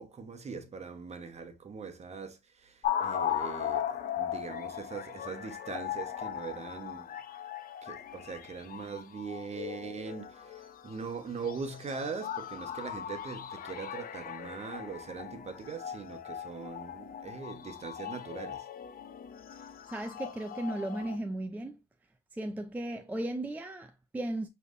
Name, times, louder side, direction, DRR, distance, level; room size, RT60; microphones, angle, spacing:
voice 1, 0.0-7.1 7.8-18.7, right 5 dB, 35° right, 1.1 m, -41 dB
sound 1, 2.8-11.0 11.4-21.2, left 9 dB, 45° left, 0.7 m, -38 dB
voice 2, 19.9-21.8 22.3-24.5, right 1 dB, 10° right, 0.5 m, -36 dB
4.8 x 3.3 x 2.6 m
supercardioid pair, 80°, 20 cm